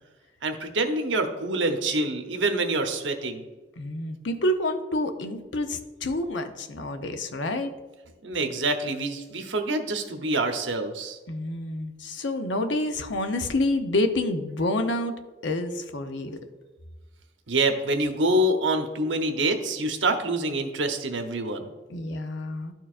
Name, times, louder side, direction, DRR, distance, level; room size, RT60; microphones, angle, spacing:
voice 1, 0.4-3.5 8.2-11.2 17.5-21.7, right 2 dB, 80° right, 5 dB, 0.9 m, -26 dB
voice 2, 3.8-7.7 11.3-15.1 15.4-16.4 21.9-22.7, left 1 dB, 75° left, 7 dB, 0.7 m, -28 dB
12.5 x 4.6 x 2.5 m, 1.2 s
head